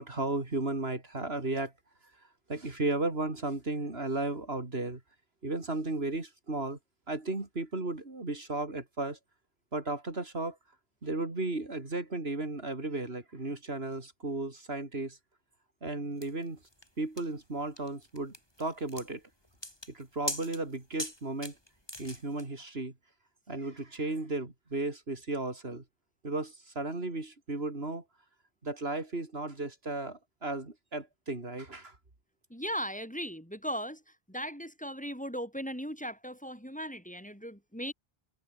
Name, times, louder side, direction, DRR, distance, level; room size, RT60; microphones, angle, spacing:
voice 1, 0.0-1.7 2.5-5.0 5.4-6.8 7.1-9.2 9.7-10.6 11.0-15.2 15.8-16.6 17.0-19.2 19.9-21.6 22.0-22.9 23.5-25.8 26.2-28.0 28.6-32.0, right 2 dB, 85° right, 3.9 m, -34 dB
sound 1, 16.2-22.5, left 1 dB, 25° left, 6.3 m, -42 dB
voice 2, 32.5-37.9, equal, 5° left, 4.6 m, -38 dB
omnidirectional pair, 1.0 m